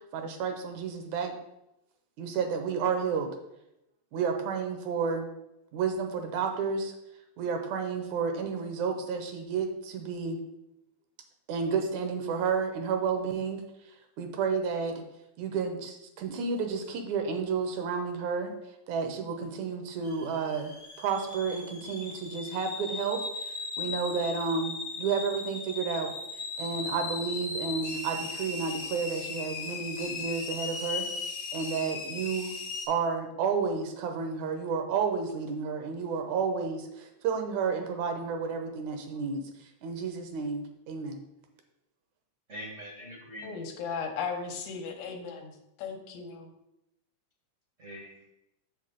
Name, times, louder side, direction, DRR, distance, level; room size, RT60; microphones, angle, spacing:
voice 1, 0.1-1.3 2.2-3.3 4.1-5.3 5.7-6.9 7.4-10.4 11.5-13.6 14.2-15.0 15.4-18.5 18.9-26.1 26.6-31.1 31.5-32.5 32.9-39.4 39.8-41.2, right 5 dB, 75° right, 5 dB, 2.1 m, -31 dB
sound 1, 20.0-32.9, left 4 dB, 55° left, 1.1 m, -37 dB
voice 2, 42.5-43.6 47.8-48.2, equal, 55° right, -4 dB, 0.8 m, -43 dB
voice 3, 43.4-46.5, left 5 dB, 75° left, 3 dB, 2.2 m, -36 dB
6.8 x 5.8 x 3.8 m, 0.86 s
omnidirectional pair, 3.5 m